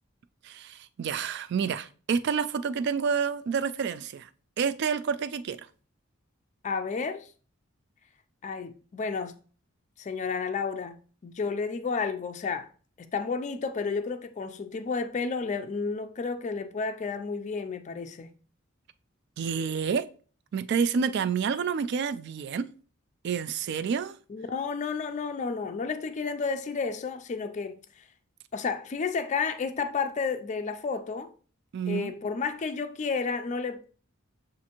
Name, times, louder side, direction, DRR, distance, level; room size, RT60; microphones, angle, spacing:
voice 1, 0.4-4.3 4.6-5.6 19.4-20.1 20.5-22.7 23.2-24.2 31.7-32.1, right 6 dB, 55° right, 0.3 m, -29 dB
voice 2, 6.6-7.3 8.4-9.4 10.0-11.0 11.2-12.7 13.0-18.3 24.3-28.0 28.5-31.3 31.9-33.9, left 5 dB, 35° left, 0.3 m, -31 dB
7.1 x 2.5 x 2.9 m
head